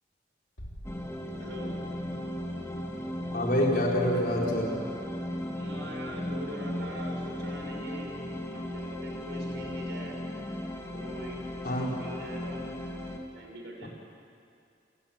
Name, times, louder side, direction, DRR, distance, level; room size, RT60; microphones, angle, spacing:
sound 1, 0.6-2.5, equal, 75° left, 3.6 m, -48 dB
sound 2, 0.8-13.2, left 1 dB, 15° left, 2.5 m, -36 dB
voice 1, 1.4-1.7 5.5-8.2 8.5-10.2 10.9-12.6 13.3-13.9, right 1 dB, 75° right, 1 dB, 6.0 m, -43 dB
voice 2, 3.3-4.8 11.6-11.9 13.8-13.9, left 1 dB, 55° left, -2 dB, 4.6 m, -27 dB
28.5 x 18.0 x 8.8 m, 2.4 s
head